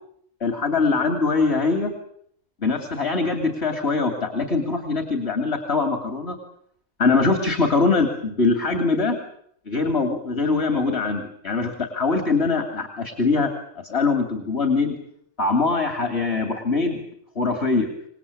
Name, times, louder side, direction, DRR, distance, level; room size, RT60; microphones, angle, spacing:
voice 1, 0.4-1.9 2.6-6.4 7.0-9.2 9.7-13.5 13.8-15.0 15.4-17.0 17.3-17.9, left 3 dB, 60° left, 4 dB, 3.1 m, -22 dB
27.0 x 19.5 x 8.6 m, 0.69 s
omnidirectional pair, 1.2 m